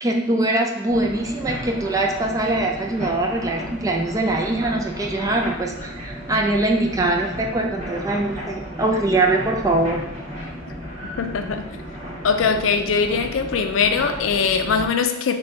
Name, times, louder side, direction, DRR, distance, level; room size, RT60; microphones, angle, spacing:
voice 1, 0.0-10.0, right 2 dB, 20° right, 1 dB, 0.4 m, -22 dB
sound 1, 0.9-14.9, equal, 35° right, 1.4 m, -34 dB
voice 2, 11.2-11.7 12.2-15.4, left 5 dB, 80° left, 7 dB, 0.4 m, -21 dB
6.4 x 2.3 x 2.9 m, 0.87 s
head